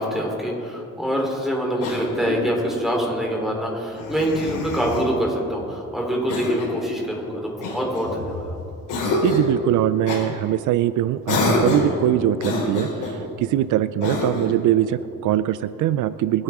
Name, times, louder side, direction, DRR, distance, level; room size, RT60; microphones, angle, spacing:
voice 1, 0.0-8.6, equal, ahead, -1 dB, 3.5 m, -25 dB
Cough, 1.8-2.6 3.9-5.1 6.3-6.8 7.6-8.4 8.9-9.5 10.1-10.3 11.3-12.0 12.4-13.2 14.0-14.6, left 2 dB, 90° left, 3.6 m, -25 dB
voice 2, 9.2-16.4, right 12 dB, 80° right, 15 dB, 0.5 m, -22 dB
23.5 x 9.1 x 3.6 m, 2.7 s
cardioid pair, 90°, 30 cm